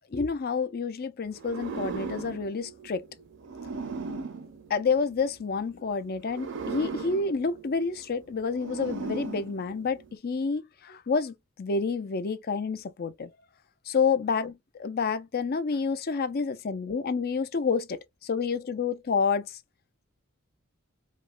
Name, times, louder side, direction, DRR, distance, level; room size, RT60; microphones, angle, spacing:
voice 1, 0.1-3.0 4.7-13.3 13.9-19.6, left 5 dB, 45° left, 0.5 m, -29 dB
sound 1, 1.3-5.5 6.2-10.2, right 4 dB, 60° right, 0.6 m, -38 dB
5.0 x 2.1 x 2.5 m
head